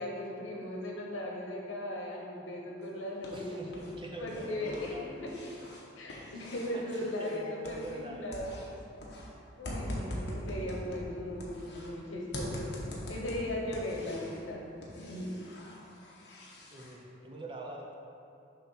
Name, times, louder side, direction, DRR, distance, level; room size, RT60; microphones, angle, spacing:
voice 1, 0.0-3.6 4.2-5.3 6.0-8.5 9.6-12.7 13.1-14.6 14.9-15.3, left 1 dB, 90° left, -2 dB, 1.1 m, -38 dB
sound 1, 2.8-3.9 4.2-8.1 8.3-11.9 12.3-14.4 14.8-16.9, equal, 60° left, 1.1 m, -42 dB
voice 2, 3.3-5.1 6.3-6.5 6.7-8.7 16.7-17.9, right 1 dB, 25° right, -1 dB, 0.6 m, -44 dB
6.8 x 3.1 x 5.7 m, 2.6 s
head